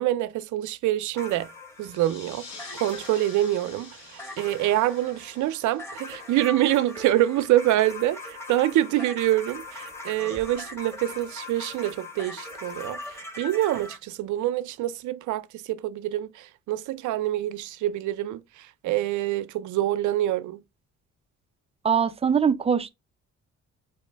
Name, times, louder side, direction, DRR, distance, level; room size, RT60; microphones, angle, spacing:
voice 1, 0.0-1.5 1.8-2.5 2.7-20.6, right 14 dB, 75° right, 0.5 m, -26 dB
sound 1, 1.2-14.0, left 2 dB, 10° left, 0.9 m, -41 dB
sound 2, 1.8-7.0, left 4 dB, 65° left, 1.3 m, -47 dB
voice 2, 21.8-22.9, right 7 dB, 20° right, 0.4 m, -22 dB
5.4 x 2.1 x 3.2 m
cardioid pair, 90°, 30 cm